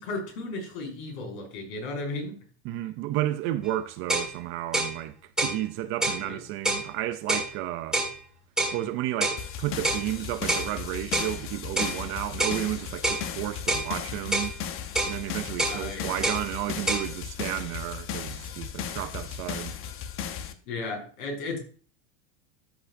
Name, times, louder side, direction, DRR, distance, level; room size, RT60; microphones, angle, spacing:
voice 1, 0.0-2.4 6.2-6.4 15.7-16.1 20.7-21.6, left 3 dB, 55° left, 5.6 m, -34 dB
voice 2, 2.6-8.0 8.7-14.5 15.0-19.8, right 14 dB, 35° right, 0.5 m, -32 dB
sound 1, 3.7-3.8 4.1-4.3 4.7-4.9 5.4-5.6 6.0-6.2 6.6-6.9 7.3-7.5 7.9-8.1 8.6-8.8 9.2-9.4 9.8-10.1 10.5-10.7 11.1-11.3 11.8-12.0 12.4-12.6 13.0-13.2 13.7-13.9 14.3-14.5 14.9-15.2 15.6-15.8 16.2-16.4 16.9-17.1, right 2 dB, ahead, 1.8 m, -26 dB
sound 2, 9.4-20.5, left 8 dB, 35° left, 0.9 m, -36 dB
13.0 x 8.1 x 2.6 m
supercardioid pair, 160°, 39 cm